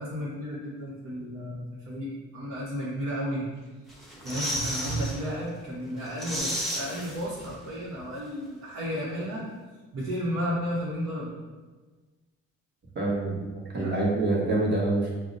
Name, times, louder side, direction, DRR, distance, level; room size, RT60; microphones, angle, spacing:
voice 1, 0.0-3.7 4.2-9.4 9.9-11.3 13.7-14.0, equal, 60° right, -9 dB, 1.1 m, -33 dB
sound 1, 3.9-5.2 5.6-5.7 6.0-7.7 8.0-8.1, equal, ahead, 0.8 m, -33 dB
voice 2, 12.9-15.2, right 2 dB, 35° right, -4 dB, 1.2 m, -26 dB
5.7 x 2.1 x 2.5 m, 1.3 s
cardioid pair, 90°, 30 cm